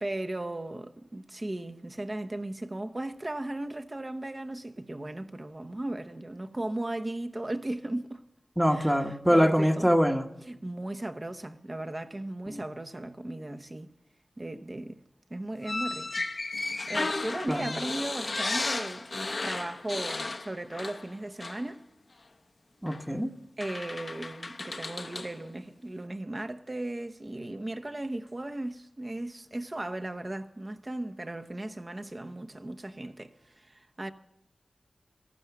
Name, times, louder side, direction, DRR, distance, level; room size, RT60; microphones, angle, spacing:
voice 1, 0.0-8.2 8.7-9.9 10.5-13.9 14.4-15.0 15.3-21.8 23.6-34.1, right 1 dB, 30° right, 0.9 m, -37 dB
voice 2, 8.6-10.3 12.5-12.6 17.5-17.8 22.8-23.3, equal, 5° right, 1.0 m, -24 dB
sound 1, 15.6-21.1 21.4-21.6 22.9-23.0 23.6-25.3, left 3 dB, 50° left, 0.8 m, -34 dB
14.5 x 12.5 x 5.9 m
wide cardioid pair, 65°, 0 cm